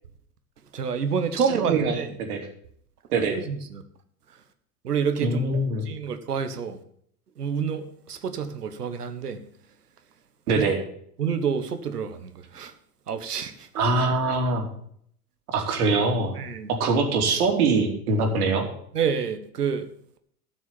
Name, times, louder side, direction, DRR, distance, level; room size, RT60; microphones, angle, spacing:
voice 1, 0.7-2.2 3.3-3.8 4.8-5.4 5.8-6.8 7.4-9.4 10.5-10.6 11.2-12.7 13.1-13.7 16.3-16.7 18.9-19.9, right 6 dB, 90° right, 9 dB, 1.4 m, -28 dB
voice 2, 5.2-5.8 10.5-10.8 13.7-14.7 15.5-16.3 16.8-18.7, right 3 dB, 70° right, 2 dB, 3.1 m, -23 dB
13.0 x 6.1 x 7.1 m, 0.65 s
hypercardioid pair, 100°, 45 cm